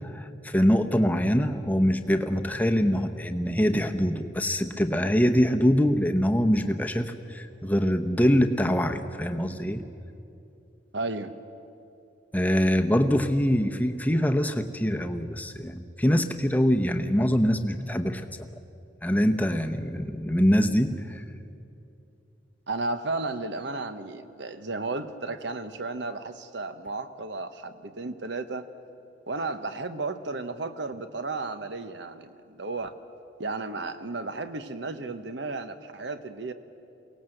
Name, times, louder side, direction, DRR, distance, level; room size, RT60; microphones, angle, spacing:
voice 1, 0.0-9.8 12.3-18.5 19.0-21.2, equal, 10° left, 6 dB, 0.9 m, -24 dB
voice 2, 10.9-11.3 22.7-28.6 29.3-32.9 33.4-36.5, right 3 dB, 70° right, 10 dB, 1.1 m, -33 dB
22.5 x 18.0 x 7.9 m, 2.7 s
head